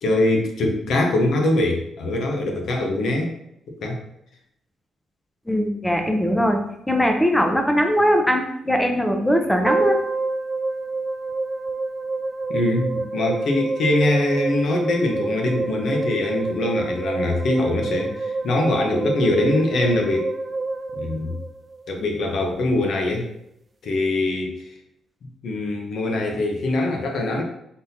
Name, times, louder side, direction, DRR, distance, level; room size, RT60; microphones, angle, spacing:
voice 1, 0.0-3.3 3.8-4.0 12.5-20.3 20.9-21.3 21.9-23.3 23.8-24.5 25.4-27.4, left 1 dB, 70° left, 2 dB, 0.9 m, -22 dB
voice 2, 5.5-6.6 6.9-10.0, equal, 5° left, 3 dB, 0.7 m, -20 dB
sound 1, 9.7-21.9, right 3 dB, 35° right, 0.3 m, -28 dB
4.0 x 3.8 x 2.7 m, 0.78 s
cardioid pair, 85°, 0 cm